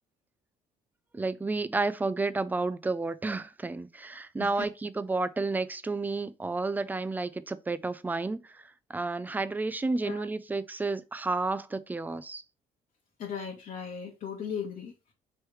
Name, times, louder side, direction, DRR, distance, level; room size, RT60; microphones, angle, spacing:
voice 1, 1.1-12.4, right 3 dB, 10° right, 0.4 m, -31 dB
voice 2, 13.2-15.1, left 7 dB, 50° left, 1.0 m, -37 dB
3.1 x 3.1 x 4.7 m
cardioid pair, 110°, 17 cm